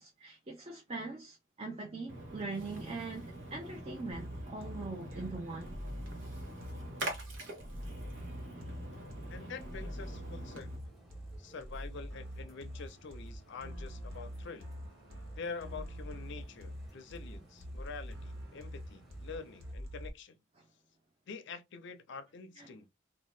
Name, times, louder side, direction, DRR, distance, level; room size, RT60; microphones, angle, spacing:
voice 1, 0.0-5.8 22.6-22.7, right 3 dB, 30° right, 0.6 m, -42 dB
Splash splatter, 2.1-10.8, right 1 dB, 65° right, 1.0 m, -45 dB
sound 1, 4.1-20.1, equal, 85° right, 1.1 m, -45 dB
sound 2, 8.5-19.7, right 1 dB, ahead, 0.9 m, -60 dB
voice 2, 9.3-10.9 11.4-14.7 15.4-20.4 21.3-22.9, left 4 dB, 60° left, 0.5 m, -46 dB
2.7 x 2.2 x 3.1 m
head